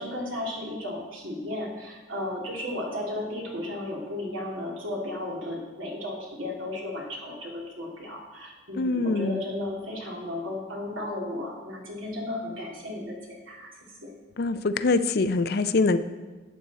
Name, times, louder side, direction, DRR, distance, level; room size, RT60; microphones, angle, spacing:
voice 1, 0.0-13.7 14.0-14.1, left 1 dB, 85° right, -2 dB, 2.7 m, -34 dB
voice 2, 8.8-9.4 14.4-16.0, left 3 dB, 50° left, 12 dB, 0.4 m, -24 dB
12.0 x 8.2 x 4.1 m, 1.2 s
head